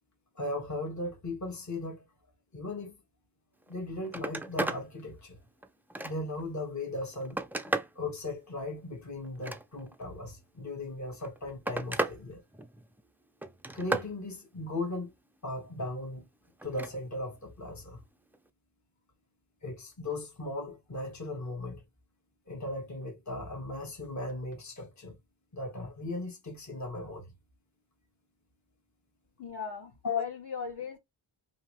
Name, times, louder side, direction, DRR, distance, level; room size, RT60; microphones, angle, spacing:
voice 1, 0.3-2.0 2.5-2.9 3.7-5.4 6.0-7.4 7.9-12.4 13.7-15.1 15.4-16.3 16.6-18.0 19.6-21.8 22.5-25.1 25.5-27.3 30.0-30.2, left 2 dB, 35° left, 1.3 m, -37 dB
Telephone, 3.6-3.7 4.0-4.8 5.3-6.4 7.0-8.0 9.2-10.0 11.0-12.2 12.5-13.0 13.4-14.1 16.6-16.9 18.3-18.5, right 2 dB, 5° right, 0.3 m, -34 dB
voice 2, 29.4-31.0, left 5 dB, 55° left, 1.4 m, -39 dB
2.8 x 2.6 x 3.0 m
cardioid pair, 55°, 49 cm